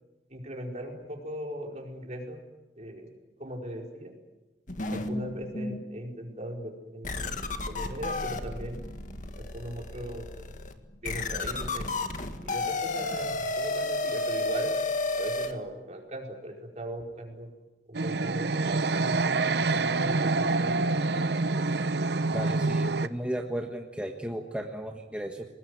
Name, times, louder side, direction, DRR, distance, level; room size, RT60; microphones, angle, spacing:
voice 1, 0.3-2.4 2.8-3.1 3.4-4.1 4.9-7.4 7.7-8.8 9.4-10.3 11.0-11.9 12.4-14.7 15.1-17.5 17.9-21.0, right 1 dB, 40° right, 2 dB, 4.8 m, -39 dB
sound 1, 4.7-5.8 6.4-6.5 7.0-15.5, left 2 dB, 45° left, 1.9 m, -32 dB
sound 2, 17.9-23.1, right 3 dB, 70° right, 0.8 m, -26 dB
voice 2, 22.3-25.5, right 1 dB, 5° right, 2 dB, 1.5 m, -35 dB
24.5 x 20.0 x 9.7 m, 1.0 s
head